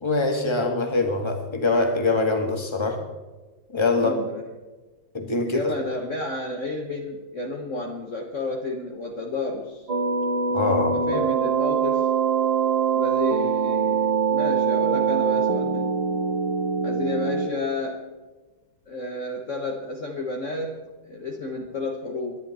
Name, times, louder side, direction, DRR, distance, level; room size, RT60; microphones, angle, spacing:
voice 1, 0.0-3.0 3.7-4.1 5.1-5.7 10.5-11.0, left 3 dB, 15° left, 4 dB, 1.7 m, -23 dB
voice 2, 4.0-4.4 5.4-9.9 10.9-12.1 12.9-15.9 16.8-18.0 18.9-20.8 21.0-22.4, left 2 dB, 45° left, 2 dB, 1.4 m, -31 dB
sound 1, 9.9-17.5, right 6 dB, 55° right, 0.4 m, -23 dB
23.5 x 10.5 x 4.2 m, 1.3 s
omnidirectional pair, 2.2 m